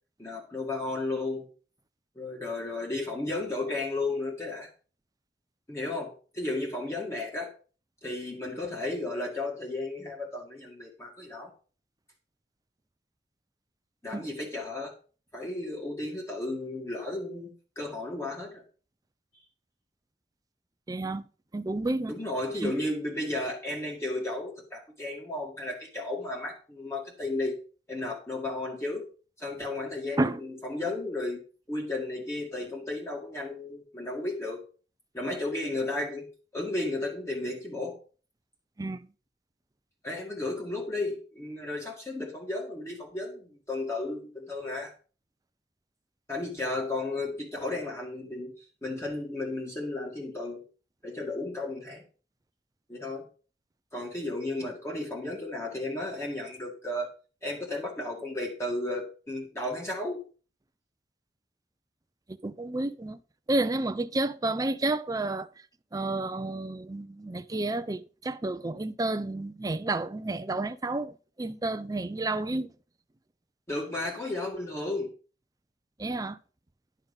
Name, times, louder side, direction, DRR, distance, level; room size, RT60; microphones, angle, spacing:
voice 1, 0.2-1.5 2.2-4.7 5.7-7.5 8.0-11.5 14.0-14.9 15.3-18.6 22.1-27.6 27.9-29.0 29.4-31.4 31.7-34.6 35.1-36.3 36.5-38.0 40.0-44.9 46.3-50.6 51.0-52.0 52.9-53.2 53.9-57.1 57.4-60.2 73.7-75.1, left 2 dB, 15° left, 1.9 m, -34 dB
voice 2, 20.9-21.2 21.5-22.1 22.6-22.7 30.2-30.4 38.8-39.1 62.3-63.2 63.5-65.5 65.9-72.7 76.0-76.4, right 2 dB, 20° right, 0.5 m, -30 dB
10.5 x 5.8 x 5.2 m
head